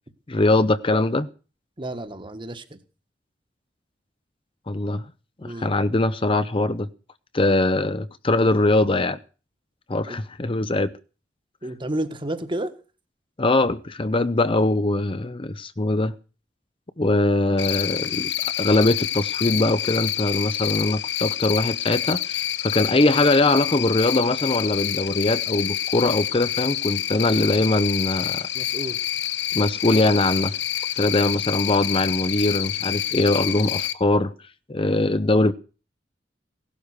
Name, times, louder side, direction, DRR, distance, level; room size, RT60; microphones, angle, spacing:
voice 1, 0.3-1.3 4.7-5.1 5.4-6.9 7.3-9.2 9.9-10.9 13.4-16.1 17.0-28.5 29.5-30.5 31.0-34.3 34.7-35.5, left 2 dB, 30° left, 0.7 m, -22 dB
voice 2, 1.8-2.8 5.4-5.7 10.0-10.2 11.6-12.7 28.5-29.0, right 1 dB, 30° right, 1.6 m, -31 dB
Cricket, 17.6-33.9, left 12 dB, 80° left, 1.0 m, -27 dB
17.5 x 12.0 x 6.6 m
head